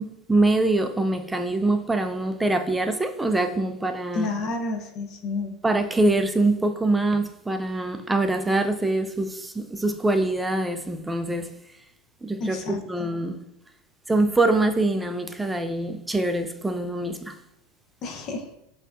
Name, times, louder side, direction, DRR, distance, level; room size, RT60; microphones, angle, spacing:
voice 1, 0.0-4.3 5.6-11.5 12.2-12.6 12.8-13.4 14.1-17.4, right 2 dB, 10° right, 0.4 m, -24 dB
voice 2, 4.1-5.5 12.4-13.1 18.0-18.5, left 3 dB, 50° left, 0.8 m, -30 dB
5.5 x 2.7 x 2.4 m
hypercardioid pair, 95°, 0 cm